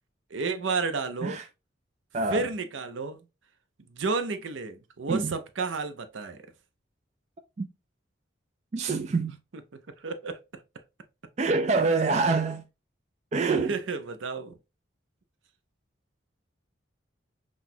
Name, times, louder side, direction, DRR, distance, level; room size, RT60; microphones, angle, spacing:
voice 1, 0.3-1.4 2.3-3.2 3.9-6.4 10.0-10.4 13.5-14.5, right 4 dB, 75° right, 0.6 m, -31 dB
voice 2, 8.7-9.3 11.4-12.6 13.3-13.7, right 3 dB, 35° right, 0.3 m, -25 dB
5.9 x 2.4 x 2.6 m
head